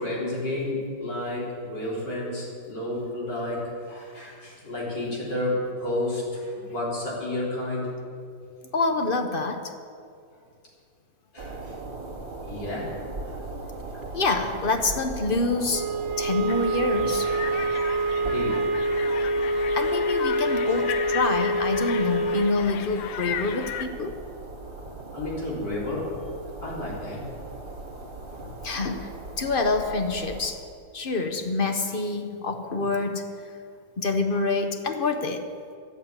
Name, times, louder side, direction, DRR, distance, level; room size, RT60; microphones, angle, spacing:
voice 1, 0.0-7.9 10.3-10.4 11.3-11.8 12.4-13.0 13.2-13.4 13.8-14.0 18.2-18.7 20.6-20.8 25.1-26.2 26.6-27.3, left 1 dB, 65° left, -5 dB, 4.2 m, -31 dB
voice 2, 8.7-9.7 14.1-17.3 19.7-24.2 28.4-29.1 29.4-30.6 30.9-33.3 34.0-35.4, left 3 dB, 45° left, 6 dB, 0.7 m, -26 dB
sound 1, 11.4-30.5, right 2 dB, 25° right, 2.1 m, -39 dB
sound 2, 15.7-22.7, right 1 dB, 80° right, 1.6 m, -26 dB
sound 3, 16.5-23.9, left 9 dB, 85° left, 1.4 m, -36 dB
11.5 x 8.4 x 8.7 m, 2.3 s
omnidirectional pair, 2.0 m